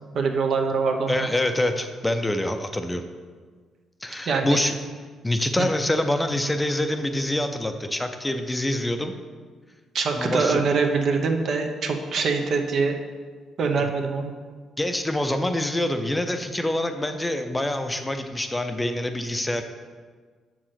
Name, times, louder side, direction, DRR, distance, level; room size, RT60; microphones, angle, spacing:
voice 1, 0.1-1.3 4.3-4.6 9.9-13.0 13.6-14.3, right 4 dB, 60° right, 4 dB, 0.9 m, -24 dB
voice 2, 1.1-3.1 4.0-4.8 5.2-9.1 10.1-10.6 14.8-19.6, left 1 dB, 10° left, 7 dB, 0.5 m, -25 dB
6.6 x 4.9 x 5.8 m, 1.5 s
cardioid pair, 90°, 0 cm